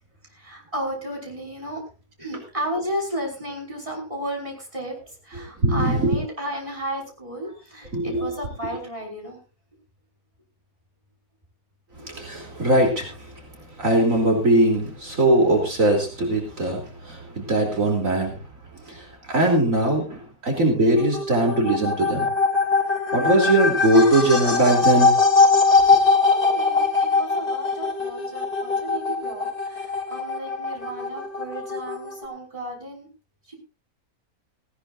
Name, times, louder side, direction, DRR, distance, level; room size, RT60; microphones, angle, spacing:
voice 1, 0.3-1.8 2.2-4.9 5.2-9.4 12.0-12.1 26.3-33.1 33.5-33.6, right 1 dB, 20° right, -1 dB, 5.6 m, -33 dB
voice 2, 5.3-6.2 7.9-8.3 12.0-18.5 18.8-22.3 23.1-25.3 25.6-25.8, right 1 dB, 65° right, 1 dB, 3.6 m, -21 dB
sound 1, 21.0-32.2, left 4 dB, 85° left, 3.5 m, -22 dB
18.5 x 17.5 x 2.6 m, 0.32 s
omnidirectional pair, 1.5 m